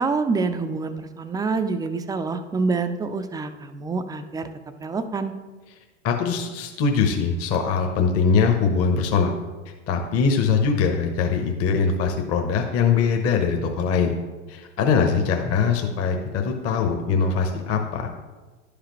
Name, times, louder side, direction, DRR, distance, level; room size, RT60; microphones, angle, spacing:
voice 1, 0.0-4.5 4.8-5.3, right 4 dB, 10° right, 8 dB, 0.3 m, -26 dB
voice 2, 6.0-9.4 9.9-14.1 14.5-18.1, left 5 dB, 40° left, 3 dB, 1.0 m, -22 dB
11.0 x 5.0 x 3.1 m, 1.3 s
hypercardioid pair, 85°, 37 cm